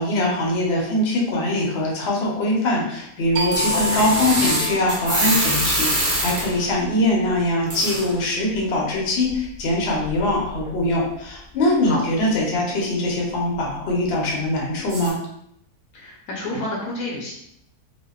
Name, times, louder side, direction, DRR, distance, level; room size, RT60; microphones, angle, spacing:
voice 1, 0.0-15.2, left 1 dB, 55° left, -3 dB, 0.7 m, -22 dB
sound 1, 3.4-6.6 7.7-8.1 9.4-9.5 10.1-10.2 10.5-10.7 14.9-15.1, right 1 dB, 50° right, 0.8 m, -24 dB
sound 2, 3.4-8.7, left 1 dB, 85° right, 0.6 m, -31 dB
voice 2, 3.7-4.1 11.8-12.0 15.9-17.3, left 1 dB, 70° left, -3 dB, 1.0 m, -29 dB
2.7 x 2.1 x 2.3 m, 0.73 s
omnidirectional pair, 1.7 m